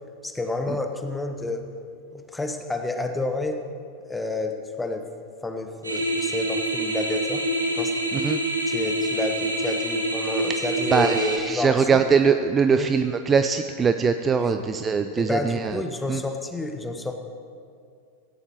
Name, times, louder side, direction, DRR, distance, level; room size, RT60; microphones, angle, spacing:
voice 1, 0.2-1.6 2.1-3.6 4.1-5.1 5.4-7.4 7.7-7.9 8.7-12.0 12.7-12.9 14.4-14.6 15.2-17.1, left 2 dB, 10° left, 6 dB, 1.1 m, -30 dB
sound 1, 5.8-11.4, right 1 dB, 80° right, 1.7 m, -26 dB
voice 2, 10.9-15.8 16.1-16.2, right 6 dB, 20° right, 9 dB, 0.5 m, -22 dB
16.5 x 16.5 x 3.1 m, 2.3 s
figure-of-eight pair, 90°, 0 cm